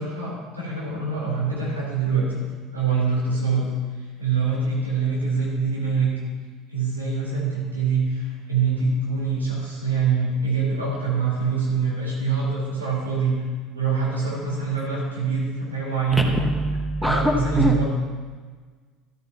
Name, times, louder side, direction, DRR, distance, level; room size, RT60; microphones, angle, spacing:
voice 1, 0.0-2.4 2.7-3.7 4.2-6.1 6.7-13.4 13.7-16.3 17.0-17.8, right 5 dB, 85° right, -5 dB, 4.1 m, -24 dB
voice 2, 16.1-17.8, equal, ahead, 3 dB, 1.3 m, -23 dB
13.5 x 13.0 x 3.0 m, 1.5 s
figure-of-eight pair, 65°, 0 cm